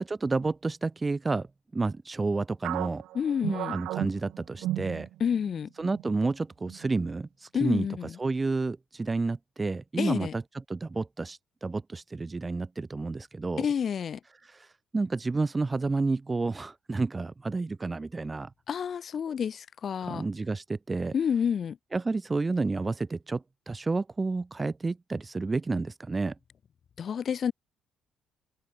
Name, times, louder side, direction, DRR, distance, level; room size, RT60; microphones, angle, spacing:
voice 1, 0.0-3.0 3.7-5.1 5.8-7.9 8.2-10.4 10.7-13.7 14.4-18.5 20.1-21.1 21.9-26.3, right 3 dB, 15° right, 0.3 m, -30 dB
sound 1, 2.6-5.5 5.8-6.0 6.7-7.1, right 15 dB, 85° right, 0.4 m, -34 dB
voice 2, 3.1-3.8 5.2-5.7 7.5-8.2 10.0-10.3 13.6-14.2 18.7-20.3 21.1-21.8 27.0-27.5, left 7 dB, 35° left, 1.0 m, -29 dB
cardioid pair, 165°, 0 cm